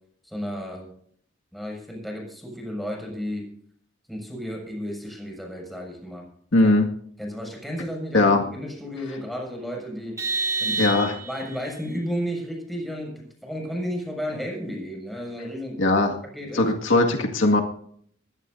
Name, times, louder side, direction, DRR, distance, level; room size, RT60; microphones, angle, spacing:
voice 1, 0.2-0.9 1.5-3.4 4.1-6.2 6.6-6.7 7.2-10.9 11.2-15.8 16.3-16.7, equal, ahead, 0 dB, 6.5 m, -33 dB
voice 2, 6.5-6.9 8.1-8.4 10.8-11.2 15.8-16.1 16.5-17.6, left 2 dB, 80° left, 2 dB, 2.1 m, -19 dB
Vehicle horn car horn honking, 10.2-11.6, right 4 dB, 15° right, 2.9 m, -28 dB
22.0 x 16.5 x 2.7 m, 0.62 s
head